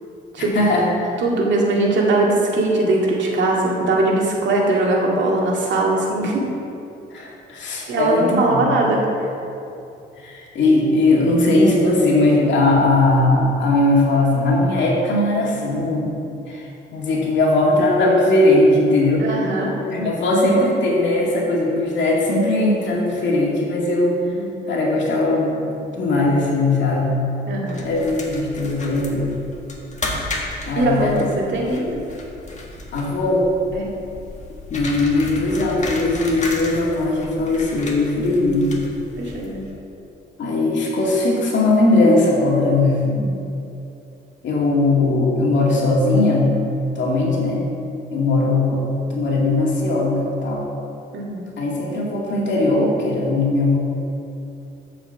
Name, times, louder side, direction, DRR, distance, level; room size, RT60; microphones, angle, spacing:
voice 1, 0.4-0.9 7.1-8.6 10.2-16.1 16.5-16.6 16.9-19.4 19.9-24.2 24.7-27.3 27.8-29.3 30.7-31.1 32.9-33.5 34.7-38.8 39.2-39.3 40.4-43.0 44.4-46.6 47.0-47.6 48.1-50.6 51.6-53.8, left 2 dB, 65° left, -3 dB, 2.2 m, -19 dB
voice 2, 1.2-6.5 7.9-9.1 19.2-19.8 24.3-24.6 27.5-27.9 30.8-32.0 33.7-33.9 39.2-39.6 43.0-43.4 51.1-51.4, right 2 dB, 65° right, -2 dB, 2.0 m, -20 dB
sound 1, 27.7-39.7, left 2 dB, 35° left, 1.6 m, -33 dB
7.9 x 5.7 x 7.1 m, 2.7 s
cardioid pair, 90°, 20 cm